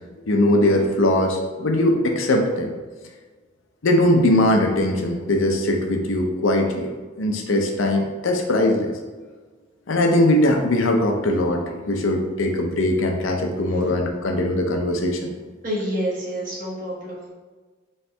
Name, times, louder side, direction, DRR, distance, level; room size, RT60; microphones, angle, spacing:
voice 1, 0.3-2.7 3.8-6.9 7.2-8.9 9.9-15.3, left 1 dB, 70° left, 3 dB, 0.6 m, -20 dB
voice 2, 15.6-17.3, equal, 40° right, -5 dB, 1.3 m, -28 dB
4.3 x 3.2 x 3.4 m, 1.4 s
head